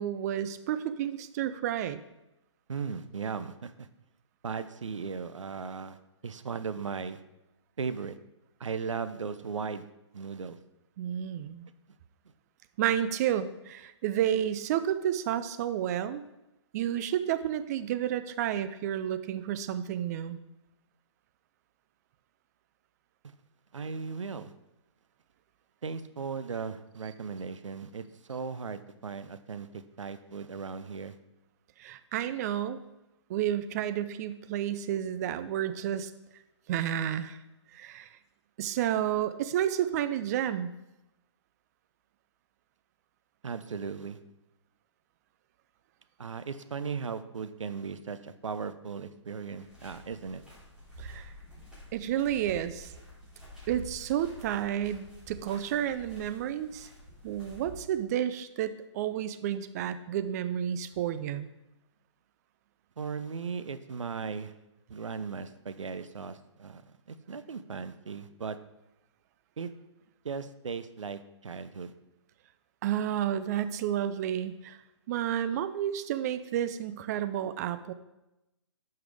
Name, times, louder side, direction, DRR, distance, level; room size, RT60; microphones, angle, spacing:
voice 1, 0.0-2.0 11.0-11.7 12.8-16.2 16.7-20.4 31.8-32.8 33.3-36.1 36.7-37.4 37.7-38.1 38.6-40.7 51.0-51.3 51.9-52.9 53.7-56.9 57.2-61.5 72.8-74.8 75.1-77.9, right 10 dB, 35° right, 12 dB, 0.5 m, -31 dB
voice 2, 2.7-3.9 4.4-6.0 6.2-7.2 7.8-8.2 8.6-9.8 10.1-10.6 23.7-24.5 25.8-31.2 43.4-44.2 46.2-50.4 63.0-64.5 64.9-66.8 67.1-68.6 69.6-69.7 70.2-71.9, right 5 dB, 85° right, 12 dB, 0.7 m, -37 dB
sound 1, 49.6-57.8, equal, 5° right, 3.2 m, -49 dB
10.5 x 5.8 x 3.4 m, 0.94 s
hypercardioid pair, 135°, 16 cm